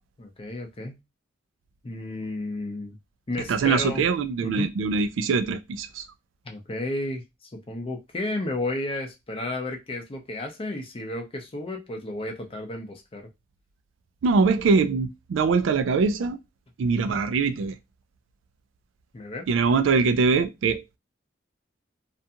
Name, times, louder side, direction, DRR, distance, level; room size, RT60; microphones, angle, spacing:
voice 1, 0.2-1.0 1.8-3.0 3.3-4.1 4.4-4.7 6.4-13.3 17.0-17.2 19.1-19.5, left 2 dB, 30° left, 0.5 m, -33 dB
voice 2, 3.5-6.0 14.2-16.4 16.8-17.8 19.5-21.0, right 4 dB, 75° right, 0.3 m, -23 dB
2.5 x 2.3 x 2.7 m
head